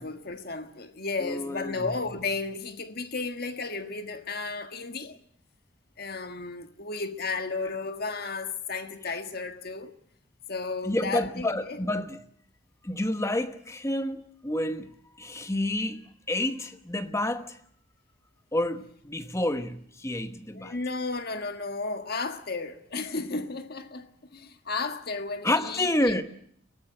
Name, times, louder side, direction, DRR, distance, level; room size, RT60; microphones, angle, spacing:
voice 1, 0.0-5.2 6.0-9.9 10.5-11.8 20.5-26.2, left 3 dB, 50° left, 1.6 m, -33 dB
voice 2, 1.2-1.9 9.1-9.2 10.8-12.2 12.8-17.6 18.5-20.7 25.4-26.2, left 1 dB, 15° left, 1.0 m, -29 dB
23.0 x 17.0 x 7.7 m
head